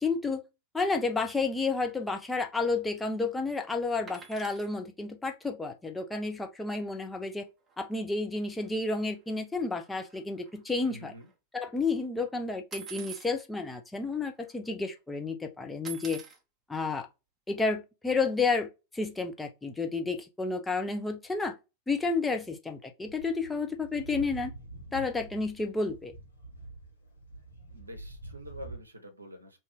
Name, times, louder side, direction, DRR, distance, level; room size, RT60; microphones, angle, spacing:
voice 1, 0.0-0.4 0.7-7.5 7.8-11.1 11.5-16.2 16.7-17.1 17.5-21.5 21.9-24.5 24.9-26.1, left 3 dB, 10° left, 0.6 m, -31 dB
sound 1, 4.1-4.7 6.9-7.0 7.2-7.4 7.7-7.8 8.6-8.7 9.2-11.3 12.7-13.3 14.1-14.2 14.4-14.9 15.8-16.4 17.6-17.7, right 7 dB, 20° right, 0.8 m, -46 dB
voice 2, 10.8-11.3 27.7-29.6, equal, 80° right, 0.7 m, -46 dB
sound 2, 23.1-28.8, right 2 dB, 75° left, 0.9 m, -46 dB
2.7 x 2.5 x 3.4 m
figure-of-eight pair, 90°, 0 cm